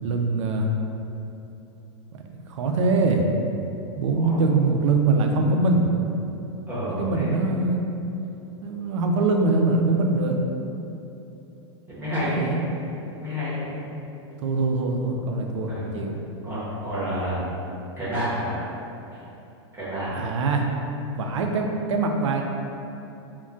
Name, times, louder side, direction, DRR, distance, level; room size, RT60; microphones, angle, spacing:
voice 1, 0.0-0.7 2.5-3.3 4.0-5.9 6.9-7.9 8.6-10.4 12.2-12.6 14.4-16.1 20.1-20.7 21.1-22.4, right 3 dB, 90° right, 2 dB, 0.4 m, -23 dB
voice 2, 6.7-7.3 11.9-12.5 13.1-13.7 15.7-15.8 16.4-17.5 18.0-18.5 19.7-20.2, equal, 15° right, -11 dB, 0.8 m, -29 dB
2.2 x 2.2 x 3.7 m, 2.9 s
supercardioid pair, 155°, 15 cm